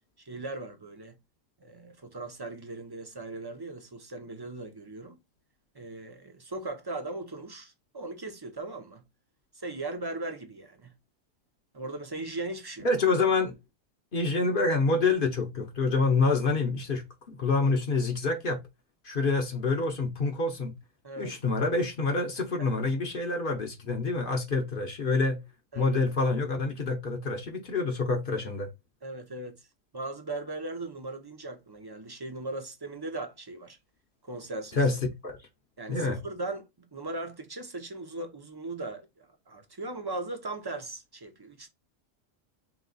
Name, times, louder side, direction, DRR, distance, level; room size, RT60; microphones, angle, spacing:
voice 1, 0.2-1.2 1.6-5.2 5.7-9.0 9.5-10.9 11.7-12.9 21.0-21.4 22.6-22.7 25.7-26.0 29.0-29.6 29.9-33.8 34.2-34.8 35.8-41.7, right 2 dB, 30° right, 0.5 m, -38 dB
voice 2, 12.8-13.5 14.1-17.0 17.4-18.6 19.0-20.7 21.2-25.4 25.8-28.7 34.8-34.9 35.2-35.4 35.9-36.2, left 3 dB, 50° left, 0.9 m, -27 dB
3.4 x 3.1 x 3.8 m
omnidirectional pair, 1.3 m